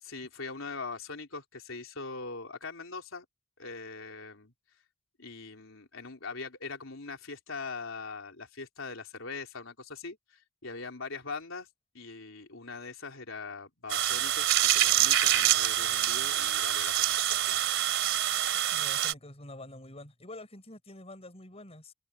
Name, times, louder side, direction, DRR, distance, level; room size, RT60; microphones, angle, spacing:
voice 1, 0.0-3.3 3.6-4.5 5.2-11.7 11.9-17.7, left 4 dB, 85° left, 3.8 m, -42 dB
sound 1, 13.9-19.1, right 12 dB, 70° right, 3.4 m, -26 dB
voice 2, 18.7-21.9, left 1 dB, 30° left, 5.2 m, -47 dB
open air
head